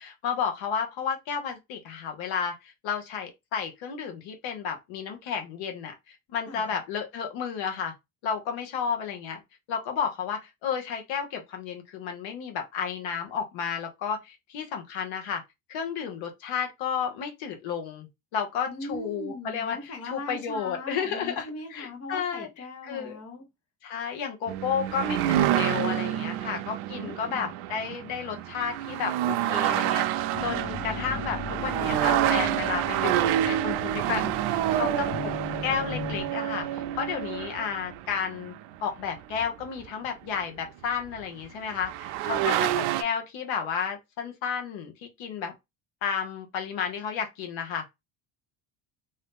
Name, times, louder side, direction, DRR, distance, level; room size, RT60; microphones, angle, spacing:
voice 1, 0.0-7.9 8.2-9.4 9.7-15.4 15.7-22.5 22.8-23.2 23.8-34.9 35.2-35.3 35.6-38.5 38.8-45.5 46.0-47.9, left 7 dB, 70° left, 1.0 m, -32 dB
voice 2, 6.5-6.8 18.7-23.5 27.0-27.5 34.7-35.2 42.3-42.7, left 1 dB, 30° left, 0.9 m, -40 dB
sound 1, 24.5-39.9 41.2-41.3 41.7-43.0, right 12 dB, 85° right, 0.6 m, -28 dB
sound 2, 30.3-36.2, left 4 dB, 85° left, 1.3 m, -38 dB
2.8 x 2.6 x 3.5 m
cardioid pair, 150°, 49 cm